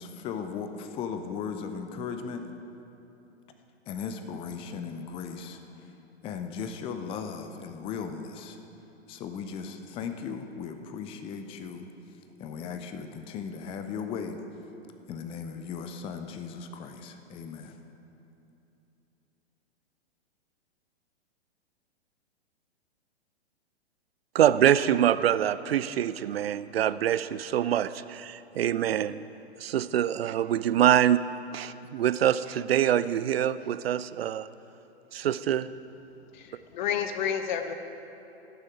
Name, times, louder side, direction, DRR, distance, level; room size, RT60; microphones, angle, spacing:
voice 1, 0.0-2.4 3.9-5.9 6.2-8.6 9.1-11.9 12.4-14.4 15.1-17.8, left 6 dB, 15° left, 7 dB, 0.5 m, -37 dB
voice 2, 24.3-29.2 29.6-31.2 31.5-34.5 35.1-35.7, right 10 dB, 65° right, 15 dB, 0.5 m, -25 dB
voice 3, 36.3-37.7, left 8 dB, 45° left, 8 dB, 0.9 m, -30 dB
17.5 x 6.9 x 4.8 m, 2.9 s
figure-of-eight pair, 110°, 32 cm